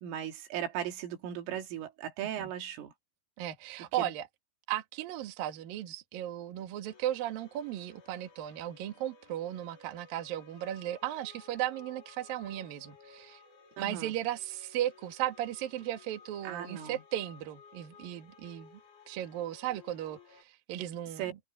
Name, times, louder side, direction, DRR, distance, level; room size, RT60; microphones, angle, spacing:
voice 1, 0.0-2.9 3.8-4.1 13.8-14.1 16.4-17.0 21.2-21.3, right 10 dB, 85° right, 4.8 m, -37 dB
voice 2, 3.4-4.3 4.7-13.4 13.8-18.8 19.1-21.4, right 12 dB, 55° right, 3.1 m, -36 dB
sound 1, 6.9-20.4, left 5 dB, 75° left, 7.4 m, -57 dB
omnidirectional pair, 5.6 m